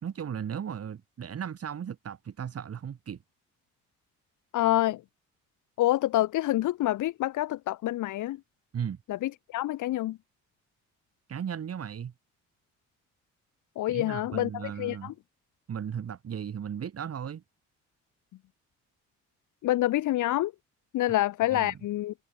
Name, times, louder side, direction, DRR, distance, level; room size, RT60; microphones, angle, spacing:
voice 1, 0.0-3.2 8.7-9.0 11.3-12.1 13.9-15.1 15.7-17.4 21.5-21.7, right 8 dB, 50° right, 3.9 m, -36 dB
voice 2, 4.5-5.0 5.8-8.4 9.1-10.2 13.7-15.1 19.6-20.5 20.9-22.1, left 15 dB, 80° left, 1.7 m, -27 dB
cardioid pair, 90°, 30 cm